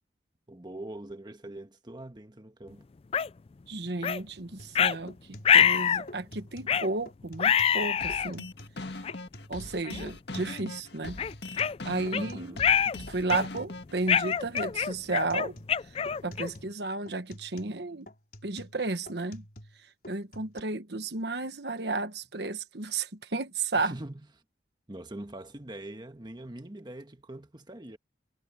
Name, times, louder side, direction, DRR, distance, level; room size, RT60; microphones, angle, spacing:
voice 1, 0.5-2.8 12.1-13.1 23.7-24.1 24.9-28.0, right 1 dB, 25° right, 1.4 m, -43 dB
sound 1, 3.1-3.3 4.0-4.2 4.7-5.0 5.4-6.1 6.7-6.9 7.4-8.3 9.0-9.1 9.8-10.1 10.5-10.6 11.2-12.2 12.6-13.0 13.3-13.6 14.1-16.6, left 8 dB, 35° left, 0.3 m, -25 dB
voice 2, 3.7-5.1 5.5-8.5 9.5-11.2 11.8-12.5 13.1-15.6 16.2-18.1 18.4-19.4 20.1-23.9, right 3 dB, 70° right, 1.3 m, -33 dB
sound 2, 4.6-4.8 5.1-6.8 7.1-7.8 8.1-8.8 9.1-10.8 11.1-13.8 14.1-14.8 15.1-16.8 17.1-19.8 20.0-20.6, left 1 dB, 55° left, 5.0 m, -48 dB
sound 3, 8.0-14.0, left 2 dB, 70° left, 1.8 m, -41 dB
head